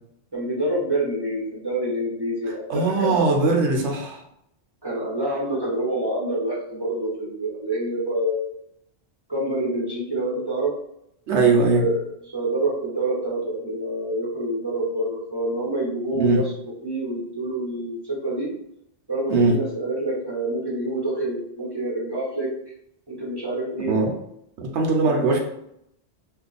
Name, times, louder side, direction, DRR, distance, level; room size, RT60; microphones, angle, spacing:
voice 1, 0.3-3.3 4.8-8.6 9.3-10.7 11.7-16.5 16.8-18.5 19.1-22.5 23.1-23.9 25.0-25.3, right 1 dB, 25° right, -5 dB, 0.9 m, -27 dB
voice 2, 2.7-4.2 11.3-11.8 16.1-16.4 19.3-19.5 23.9-24.1 24.6-25.4, right 3 dB, 85° right, 1 dB, 1.1 m, -20 dB
2.8 x 2.4 x 3.9 m, 0.75 s
omnidirectional pair, 1.2 m